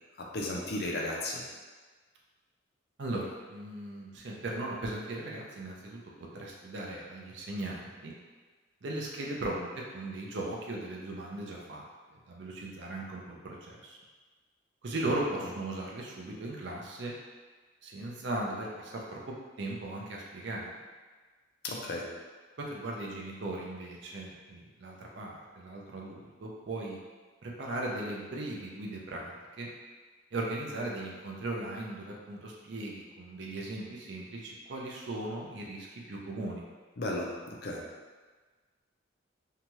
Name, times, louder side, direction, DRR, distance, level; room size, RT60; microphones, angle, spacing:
voice 1, 0.3-1.4 21.6-22.1 37.0-37.8, left 1 dB, 50° left, -2 dB, 0.4 m, -34 dB
voice 2, 3.0-6.0 6.3-8.1 8.8-11.8 12.1-14.0 14.8-17.1 17.8-19.2 19.6-20.8 22.6-27.0 27.4-29.7 30.3-36.6, right 2 dB, 60° right, -2 dB, 0.5 m, -38 dB
2.7 x 2.3 x 3.0 m, 1.4 s
head